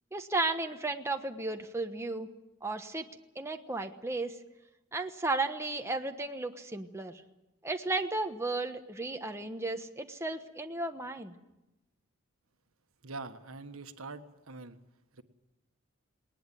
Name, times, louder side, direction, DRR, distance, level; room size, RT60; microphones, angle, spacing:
voice 1, 0.1-2.3 2.6-3.1 3.3-4.4 4.9-7.2 7.6-11.3, right 2 dB, 15° right, 5 dB, 1.2 m, -34 dB
voice 2, 13.0-14.8 15.1-15.2, right 3 dB, 75° right, 9 dB, 1.4 m, -44 dB
20.0 x 19.5 x 9.1 m, 0.95 s
head